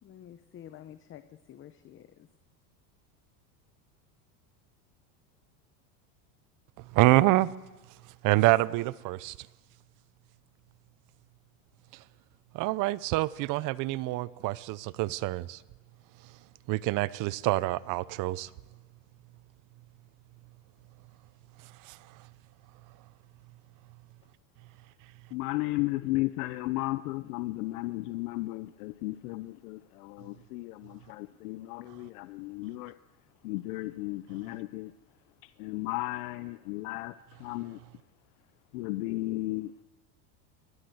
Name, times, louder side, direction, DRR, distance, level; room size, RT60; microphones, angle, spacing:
voice 1, 0.0-2.3, left 10 dB, 25° left, 0.9 m, -49 dB
voice 2, 6.9-7.5 8.2-9.5 12.5-15.6 16.7-18.5 21.8-22.0, right 18 dB, 45° right, 0.7 m, -26 dB
voice 3, 25.3-33.0 33.4-34.9 35.6-37.1 37.4-37.8 38.7-39.8, left 19 dB, 75° left, 0.8 m, -34 dB
23.5 x 20.0 x 7.9 m
supercardioid pair, 145°, 46 cm